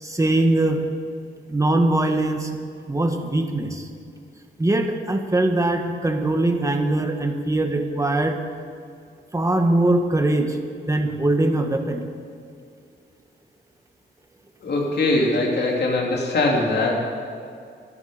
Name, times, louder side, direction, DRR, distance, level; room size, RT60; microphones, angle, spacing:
voice 1, 0.0-0.8 1.5-2.5 2.9-3.8 4.6-8.4 9.3-10.6 10.9-12.0, right 2 dB, 15° right, 4 dB, 1.6 m, -21 dB
voice 2, 14.6-17.0, left 2 dB, 55° left, -2 dB, 3.1 m, -21 dB
25.5 x 10.5 x 5.1 m, 2.4 s
wide cardioid pair, 120°, 20 cm